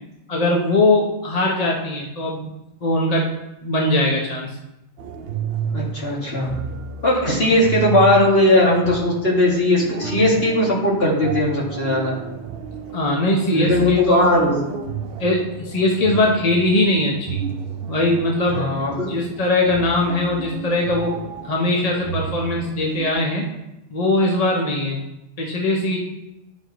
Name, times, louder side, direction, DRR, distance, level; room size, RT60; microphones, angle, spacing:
voice 1, 0.3-2.5 2.8-3.3 3.6-4.5 12.9-14.4 15.2-17.4 17.9-18.7 19.1-21.1 21.4-23.5 23.9-25.0 25.4-26.0, left 2 dB, 35° left, -1 dB, 1.0 m, -20 dB
sound 1, 5.0-23.1, right 7 dB, 65° right, 0.8 m, -32 dB
voice 2, 5.7-6.5 7.0-12.1 13.5-14.7 18.5-19.1, left 1 dB, 60° left, -5 dB, 2.4 m, -18 dB
11.0 x 7.1 x 3.0 m, 0.94 s
omnidirectional pair, 1.2 m